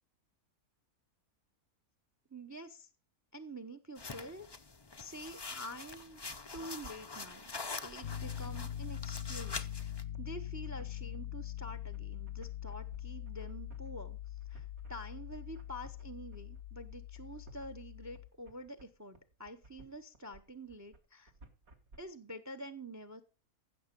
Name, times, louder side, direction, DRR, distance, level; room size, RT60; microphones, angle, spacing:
voice 1, 2.3-2.9 3.3-4.5 5.0-6.2 6.5-7.5 7.8-21.3 22.0-23.2, right 1 dB, 20° right, 12 dB, 0.5 m, -47 dB
sound 1, 4.0-10.0, left 4 dB, 30° left, 0.4 m, -45 dB
sound 2, 5.9-22.0, right 2 dB, 65° right, 2.2 m, -58 dB
Piano, 8.0-18.3, left 10 dB, 60° left, 1.1 m, -43 dB
15.0 x 6.7 x 5.2 m, 0.33 s
omnidirectional pair, 1.6 m